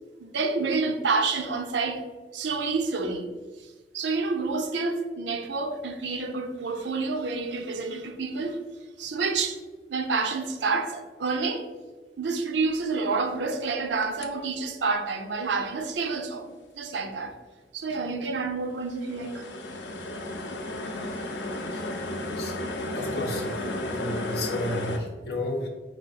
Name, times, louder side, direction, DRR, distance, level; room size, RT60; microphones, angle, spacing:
voice 1, 0.2-2.0 2.3-3.2 3.9-8.6 9.0-9.6 9.9-11.7 12.2-16.5 16.8-17.4 17.7-19.4, right 4 dB, 80° right, 0.5 m, -28 dB
sound 1, 14.0-14.3 18.8-25.0, left 1 dB, 90° left, 0.5 m, -33 dB
voice 2, 21.7-22.6 22.9-25.7, left 2 dB, 60° left, 0.8 m, -33 dB
4.8 x 2.4 x 4.0 m
head